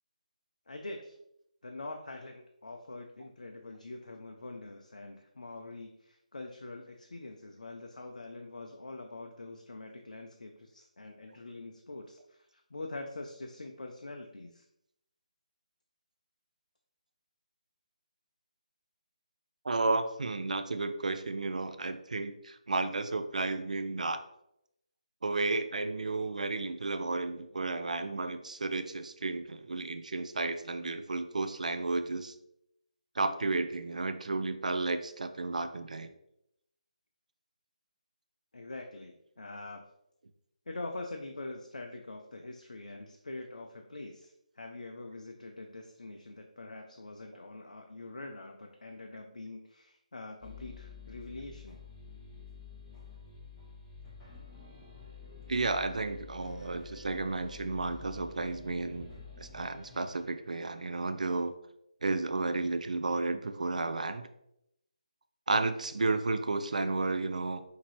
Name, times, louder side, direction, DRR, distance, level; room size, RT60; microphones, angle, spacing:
voice 1, 0.7-1.2 1.6-14.6 38.5-39.8 40.7-51.8, left 2 dB, 75° left, 3 dB, 0.5 m, -44 dB
voice 2, 19.6-24.2 25.2-32.3 33.2-36.1 55.5-59.1 59.4-61.5 62.0-64.3 65.5-67.6, right 3 dB, 70° right, 8 dB, 0.4 m, -32 dB
sound 1, 50.4-60.2, left 4 dB, 10° left, 1.1 m, -49 dB
5.8 x 2.8 x 3.1 m, 0.79 s
figure-of-eight pair, 155°, 4 cm